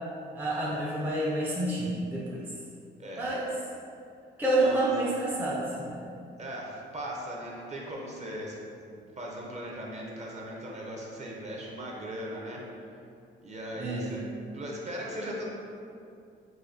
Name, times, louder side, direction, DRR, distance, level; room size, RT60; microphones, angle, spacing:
voice 1, 0.3-2.4 3.2-3.5 4.4-6.0 13.8-14.2, right 1 dB, 10° right, -6 dB, 0.4 m, -28 dB
voice 2, 3.0-3.3 4.6-4.9 6.4-8.6 9.2-12.6 13.4-14.2 14.5-15.5, equal, 35° right, -2 dB, 0.7 m, -38 dB
4.0 x 2.7 x 2.6 m, 2.5 s
cardioid pair, 90°, 20 cm